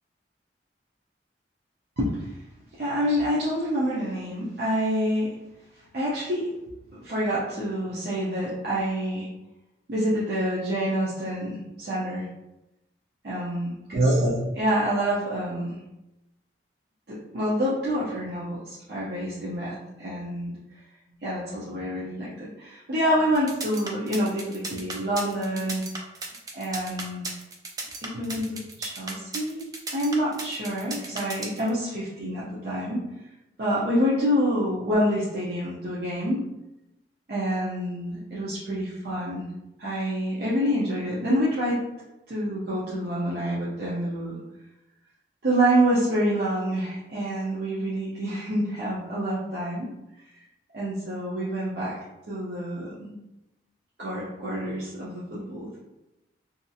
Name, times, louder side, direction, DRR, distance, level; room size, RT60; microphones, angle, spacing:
voice 1, 2.0-2.3 2.7-5.4 5.9-6.5 6.9-9.3 9.9-12.3 13.2-15.8 17.1-20.5 21.2-25.8 26.5-27.2 28.0-33.0 33.6-36.4 37.3-39.5 39.8-41.8 42.3-44.4 45.4-49.9 50.7-51.9 52.3-53.1 54.0-55.8, equal, 60° right, -8 dB, 0.6 m, -27 dB
sound 1, 23.3-31.7, right 3 dB, 20° right, 0.3 m, -35 dB
2.7 x 2.4 x 2.6 m, 0.95 s
head